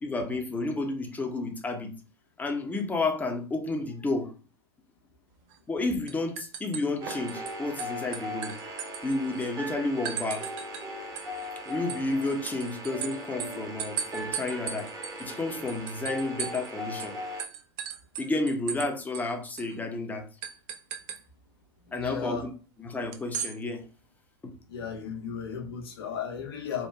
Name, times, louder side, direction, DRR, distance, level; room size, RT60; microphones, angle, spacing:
voice 1, 0.0-1.9 2.4-4.3 5.7-8.5 9.0-10.5 11.7-14.9 15.2-17.1 18.2-20.3 21.9-22.4 22.8-23.8 24.4-24.5, left 2 dB, 10° left, 0.6 m, -31 dB
sound 1, 5.5-5.8 6.1-7.5 7.8-9.5 10.1-10.9 11.2-16.7 17.0-17.1 17.4-18.9 19.1-19.2 19.6-19.7 20.4-21.2 23.1-23.5, right 8 dB, 50° right, 0.4 m, -37 dB
sound 2, 7.0-17.4, equal, 25° right, 0.9 m, -39 dB
voice 2, 21.9-22.5 24.7-26.9, left 6 dB, 70° left, 0.6 m, -35 dB
2.8 x 2.2 x 2.2 m
figure-of-eight pair, 80°, 13 cm